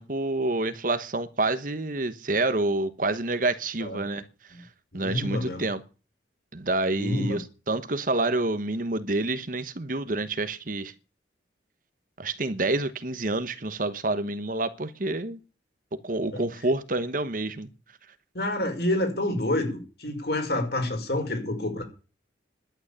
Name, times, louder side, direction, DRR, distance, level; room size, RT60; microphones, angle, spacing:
voice 1, 0.0-4.2 4.9-5.8 6.5-10.9 12.2-15.4 15.9-17.7, right 2 dB, 45° right, 1.1 m, -28 dB
voice 2, 4.9-5.7 6.9-7.4 16.3-16.5 18.3-21.8, left 1 dB, 55° left, 5.3 m, -28 dB
12.0 x 9.2 x 9.9 m
head